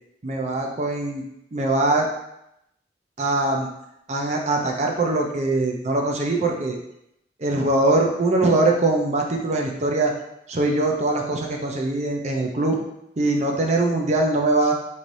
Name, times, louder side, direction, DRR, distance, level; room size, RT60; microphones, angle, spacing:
voice 1, 0.2-1.2 1.5-2.1 3.2-3.7 4.1-6.8 7.4-10.1 10.5-12.8 13.2-14.7, right 2 dB, 40° right, 1 dB, 0.5 m, -22 dB
4.1 x 3.2 x 2.6 m, 0.80 s
head